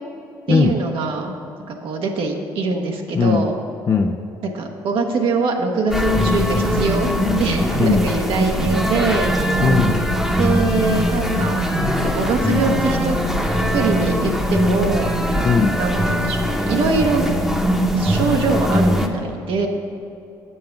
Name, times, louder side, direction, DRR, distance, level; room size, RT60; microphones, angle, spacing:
voice 1, 0.5-1.3 1.7-3.5 4.4-7.1 7.4-9.3 10.3-11.6 12.0-13.2 13.7-17.3 17.9-19.7, right 4 dB, 65° right, 2 dB, 0.8 m, -23 dB
voice 2, 3.1-3.5 3.9-4.2 7.8-8.1 9.6-10.0 15.4-15.8, left 5 dB, 35° left, 2 dB, 0.5 m, -17 dB
sound 1, 5.9-19.1, equal, ahead, 0.9 m, -21 dB
7.6 x 5.5 x 5.7 m, 2.8 s
hypercardioid pair, 60°, 10 cm